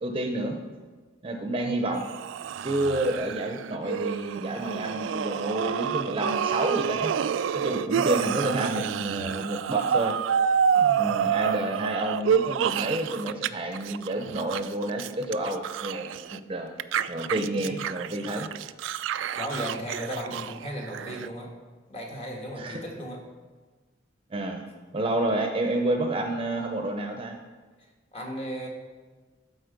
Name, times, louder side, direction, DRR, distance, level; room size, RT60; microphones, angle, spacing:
voice 1, 0.0-0.6 1.2-2.1 2.6-7.1 7.5-10.2 11.0-16.7 17.1-18.5 22.6-22.8 24.3-24.6 24.9-27.4, right 1 dB, 30° right, 4 dB, 0.7 m, -29 dB
sound 1, 1.9-13.5 13.7-16.4 16.8-21.3, right 8 dB, 80° right, 0.3 m, -28 dB
voice 2, 7.9-8.4 10.7-11.2 19.4-21.5 21.9-23.2 28.1-28.7, equal, 30° left, -1 dB, 1.5 m, -36 dB
12.5 x 4.3 x 5.2 m, 1.4 s
head